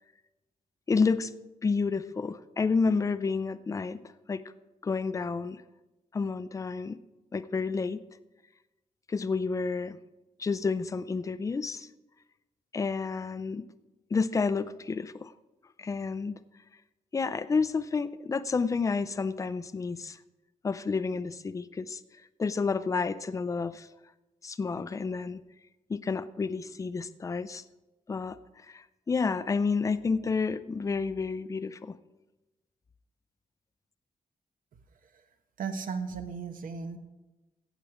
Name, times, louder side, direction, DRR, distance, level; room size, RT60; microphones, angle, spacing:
voice 1, 0.9-1.3 1.6-4.0 4.3-4.4 4.8-5.6 6.1-7.0 7.3-8.0 9.1-10.0 10.4-11.9 12.7-13.7 14.1-15.3 15.8-16.4 17.1-20.2 20.6-22.0 22.4-23.9 24.4-25.4 25.9-27.6 28.1-28.4 28.7-32.0, left 4 dB, 20° left, 14 dB, 0.4 m, -30 dB
voice 2, 35.6-37.0, right 5 dB, 75° right, 7 dB, 1.2 m, -35 dB
15.5 x 8.1 x 4.9 m, 1.1 s
wide cardioid pair, 170°, 14 cm